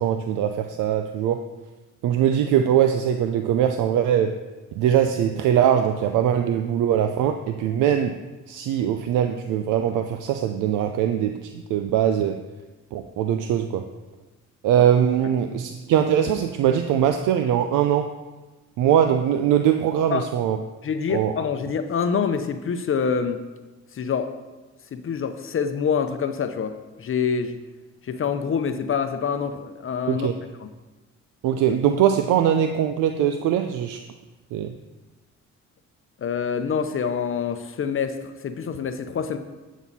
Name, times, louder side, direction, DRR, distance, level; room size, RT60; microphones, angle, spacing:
voice 1, 0.0-1.4 2.0-4.4 4.8-8.2 8.5-12.4 12.9-13.8 14.6-18.1 18.8-20.6 21.1-21.3 30.1-30.3 31.4-34.0 34.5-34.7, right 9 dB, 90° right, 7 dB, 0.5 m, -21 dB
voice 2, 20.8-23.4 23.9-24.3 24.9-27.6 28.0-30.3 30.6-30.7 36.2-39.4, left 6 dB, 45° left, 8 dB, 0.7 m, -26 dB
9.0 x 6.2 x 4.1 m, 1.2 s
cardioid pair, 90°, 30 cm